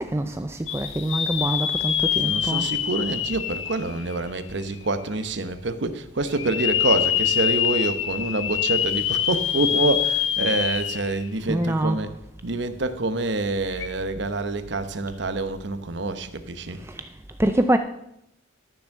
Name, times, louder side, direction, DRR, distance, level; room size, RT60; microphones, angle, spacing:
voice 1, 0.0-2.7 11.5-12.1 16.8-17.1 17.4-17.8, right 1 dB, 10° right, 0.4 m, -25 dB
sound 1, 0.7-4.6 5.1-5.2 6.3-11.3 11.6-11.7 13.7-13.9, left 10 dB, 70° left, 0.9 m, -25 dB
voice 2, 2.2-12.1 12.4-16.8, right 2 dB, 60° right, 0.9 m, -27 dB
12.5 x 7.1 x 6.6 m
head